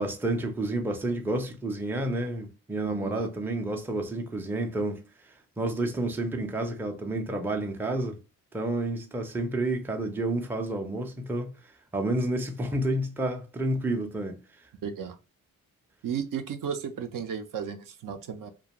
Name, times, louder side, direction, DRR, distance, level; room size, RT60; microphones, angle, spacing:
voice 1, 0.0-8.2 8.5-14.4, right 1 dB, 5° right, 0.4 m, -30 dB
voice 2, 2.8-3.3 14.8-15.2 16.0-18.5, right 7 dB, 65° right, 0.5 m, -34 dB
2.4 x 2.2 x 2.8 m
cardioid pair, 75°, 35 cm